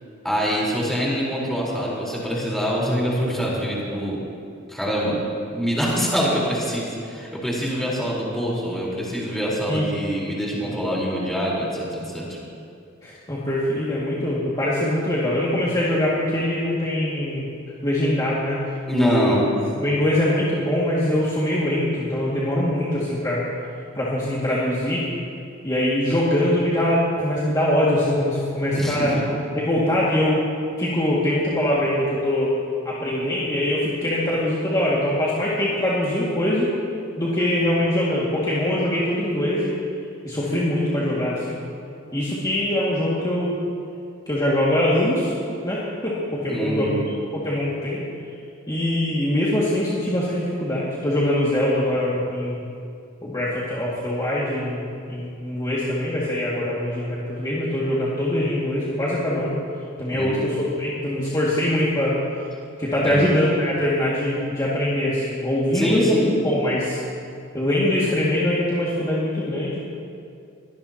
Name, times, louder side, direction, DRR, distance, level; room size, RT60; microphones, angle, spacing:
voice 1, 0.2-4.2 4.7-5.2 5.5-12.4 18.9-19.5 28.7-29.1 46.5-47.0 60.1-60.4 63.0-63.3 65.7-66.3, equal, ahead, -5 dB, 4.3 m, -24 dB
voice 2, 13.0-17.5 17.8-18.6 18.9-19.3 19.8-23.4 23.9-25.0 25.6-29.2 29.5-30.4 30.8-32.5 32.8-36.7 37.2-39.8 40.2-41.6 42.1-43.6 44.3-45.3 45.6-46.9 47.3-48.0 48.7-52.6 53.2-59.5 60.0-62.1 62.8-67.0 67.5-69.8, left 1 dB, 20° left, -8 dB, 2.2 m, -23 dB
24.0 x 18.0 x 3.0 m, 2.5 s
head